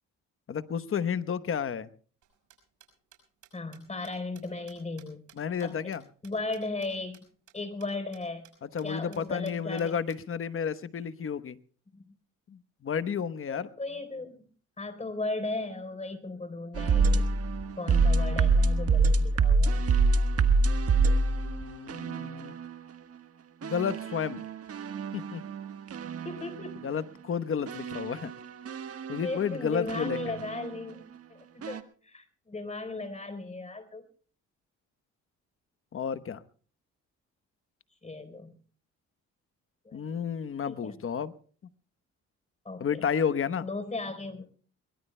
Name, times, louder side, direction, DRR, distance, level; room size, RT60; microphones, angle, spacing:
voice 1, 0.5-1.9 5.4-6.0 8.6-11.6 12.5-13.7 20.9-22.5 23.6-24.4 25.1-25.4 26.8-28.3 29.1-30.4 35.9-36.4 39.9-41.3 42.8-43.7, left 7 dB, 45° left, 14 dB, 1.0 m, -32 dB
sound 1, 2.2-6.9 7.1-7.2 7.5-7.6 7.8-7.9 8.1-8.5 8.8-8.9 9.1-10.2, right 11 dB, 75° right, 5.9 m, -56 dB
voice 2, 3.5-5.2 5.6-5.8 6.2-7.3 7.5-8.5 8.8-10.0 11.9-12.1 13.5-14.4 14.8-17.2 17.7-19.9 26.2-26.9 29.2-34.0 38.0-38.6 39.8-40.3 40.7-41.0 42.6-43.0 43.6-44.6, left 2 dB, 25° left, 10 dB, 3.9 m, -36 dB
sound 2, 16.7-22.8 23.6-26.9 27.7-30.8 31.6-31.8, right 3 dB, 50° right, 1.4 m, -26 dB
23.0 x 22.0 x 2.2 m, 0.43 s
cardioid pair, 90°, 30 cm